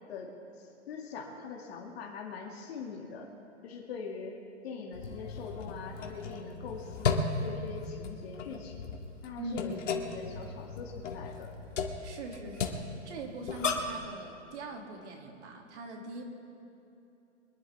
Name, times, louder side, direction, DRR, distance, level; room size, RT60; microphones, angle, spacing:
voice 1, 0.1-3.3 3.6-4.4 4.6-8.9 9.2-9.8 10.0-11.5, left 5 dB, 55° left, 0 dB, 2.4 m, -42 dB
sound 1, 4.9-14.0, left 4 dB, 75° left, 2.1 m, -36 dB
voice 2, 9.4-9.8 12.0-16.3, right 2 dB, 65° right, 2 dB, 2.9 m, -42 dB
25.5 x 11.0 x 3.6 m, 2.8 s
hypercardioid pair, 145°, 37 cm